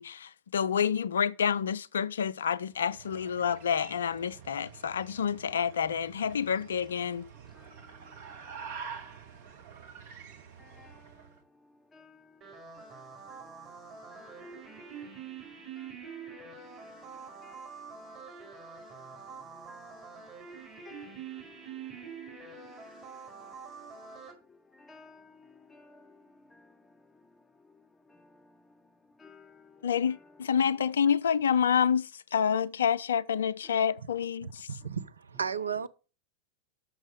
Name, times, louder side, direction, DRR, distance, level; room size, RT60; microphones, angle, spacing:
voice 1, 0.0-7.2 29.8-34.7, left 7 dB, 65° left, 0.4 m, -28 dB
sound 1, 2.7-11.4, right 6 dB, 55° right, 1.2 m, -47 dB
voice 2, 7.5-9.8 10.6-30.3, left 4 dB, 15° left, 0.7 m, -58 dB
sound 2, 12.4-24.3, right 6 dB, 30° right, 4.3 m, -46 dB
voice 3, 34.7-35.9, right 6 dB, 75° right, 0.5 m, -33 dB
6.3 x 6.1 x 6.4 m
figure-of-eight pair, 90°, 0 cm